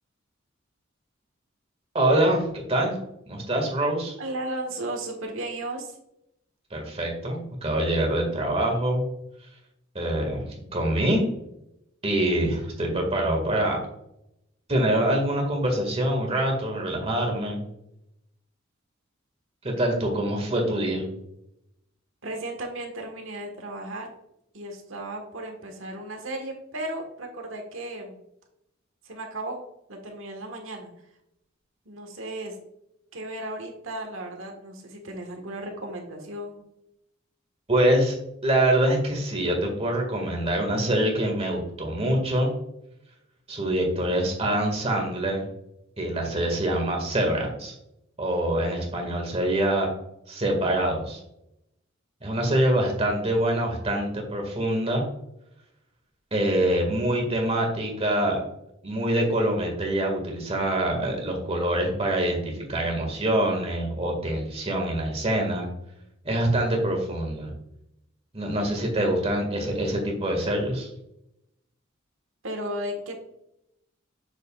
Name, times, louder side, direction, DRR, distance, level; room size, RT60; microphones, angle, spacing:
voice 1, 1.9-3.0 3.3-4.2 6.7-9.0 10.0-10.4 10.7-11.2 12.0-13.8 14.7-17.6 19.6-21.1 37.7-38.1 38.4-42.5 43.5-45.4 46.0-47.7 48.2-49.9 50.3-51.2 52.2-55.1 56.3-58.4 58.8-65.7 66.3-67.5 68.3-70.9, right 1 dB, 30° right, 1 dB, 1.8 m, -25 dB
voice 2, 4.2-6.0 22.2-24.1 24.5-28.2 29.0-29.6 29.9-30.9 31.8-32.6 33.1-36.6 72.4-73.2, right 1 dB, 75° right, 2 dB, 1.4 m, -35 dB
7.3 x 6.4 x 2.3 m, 0.80 s
head